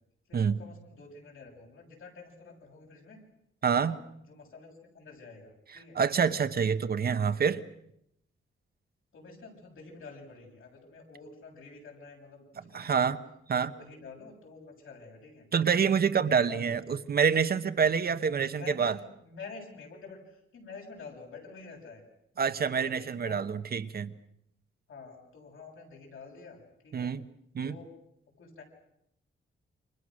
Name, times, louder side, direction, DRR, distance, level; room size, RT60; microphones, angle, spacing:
voice 1, 0.3-3.2 3.8-4.0 4.3-6.0 9.1-13.1 13.6-15.5 16.2-16.8 18.5-22.0 22.5-23.4 24.9-27.1 27.6-27.9 28.4-28.6, left 4 dB, 75° left, 0 dB, 7.8 m, -48 dB
voice 2, 3.6-4.0 5.9-7.6 12.7-13.2 13.5-13.7 15.5-18.9 22.4-24.1 26.9-27.2 27.5-27.8, right 6 dB, 50° right, 11 dB, 1.1 m, -27 dB
29.0 x 26.0 x 6.4 m, 0.77 s
wide cardioid pair, 135°, 21 cm